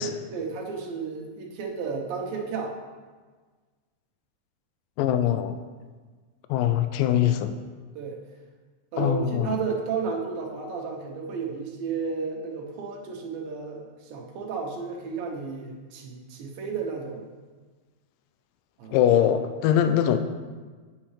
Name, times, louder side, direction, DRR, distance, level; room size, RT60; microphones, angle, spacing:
voice 1, 0.0-2.8 8.0-8.2 8.9-17.2 18.8-19.0, right 5 dB, 80° right, 0 dB, 2.8 m, -33 dB
voice 2, 5.0-5.6 6.5-7.6 9.0-9.6 18.9-20.2, left 10 dB, 80° left, 9 dB, 2.2 m, -22 dB
8.9 x 7.4 x 3.2 m, 1.4 s
omnidirectional pair, 4.0 m